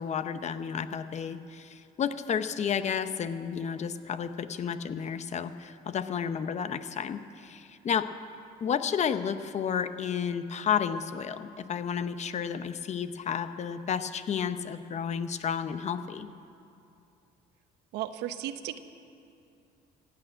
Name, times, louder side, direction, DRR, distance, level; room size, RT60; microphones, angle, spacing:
voice 1, 0.0-8.1 8.6-16.3, left 7 dB, 40° left, 11 dB, 0.7 m, -31 dB
voice 2, 17.9-18.8, right 12 dB, 90° right, 11 dB, 0.8 m, -35 dB
15.0 x 8.8 x 8.9 m, 2.6 s
cardioid pair, 110°, 17 cm